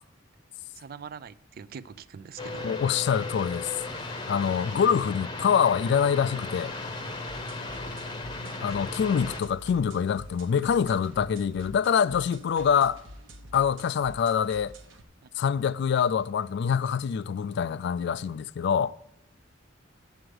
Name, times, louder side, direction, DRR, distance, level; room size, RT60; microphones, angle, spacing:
voice 1, 0.7-2.8 15.2-15.3, right 6 dB, 50° right, 0.4 m, -43 dB
sound 1, 2.4-9.4, left 2 dB, 20° left, 0.8 m, -36 dB
voice 2, 2.6-3.7 4.3-6.7 8.6-13.0 13.5-14.7 15.4-19.0, left 7 dB, 55° left, 0.3 m, -25 dB
sound 2, 7.3-15.0, equal, 65° right, 1.0 m, -48 dB
8.7 x 7.9 x 4.7 m
head